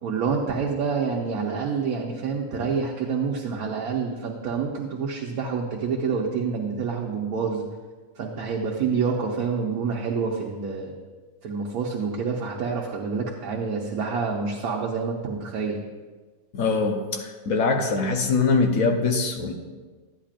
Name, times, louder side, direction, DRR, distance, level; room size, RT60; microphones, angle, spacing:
voice 1, 0.0-7.6 8.2-10.9 11.4-15.8, right 5 dB, 75° right, -2 dB, 1.3 m, -27 dB
voice 2, 16.5-19.5, left 4 dB, 65° left, 4 dB, 1.3 m, -23 dB
12.5 x 10.0 x 2.5 m, 1.4 s
omnidirectional pair, 1.6 m